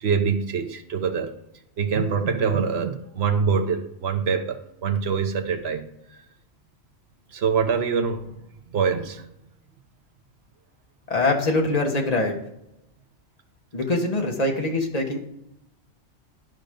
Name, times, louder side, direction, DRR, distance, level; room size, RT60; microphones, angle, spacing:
voice 1, 0.0-1.3 1.8-5.9 7.3-8.3 8.7-9.3, right 6 dB, 65° right, 6 dB, 1.2 m, -24 dB
voice 2, 11.1-12.4 13.7-15.2, left 2 dB, 35° left, 1 dB, 1.5 m, -23 dB
11.0 x 5.2 x 5.2 m, 0.80 s
omnidirectional pair, 1.2 m